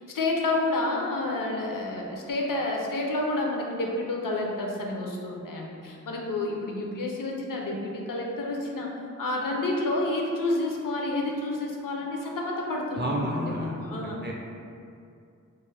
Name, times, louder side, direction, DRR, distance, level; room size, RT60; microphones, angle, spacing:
voice 1, 0.1-8.9 9.2-14.2, left 2 dB, 80° left, -1 dB, 0.5 m, -29 dB
voice 2, 13.0-14.3, right 1 dB, 35° right, -3 dB, 0.5 m, -31 dB
2.4 x 2.3 x 3.2 m, 2.4 s
wide cardioid pair, 50°, 32 cm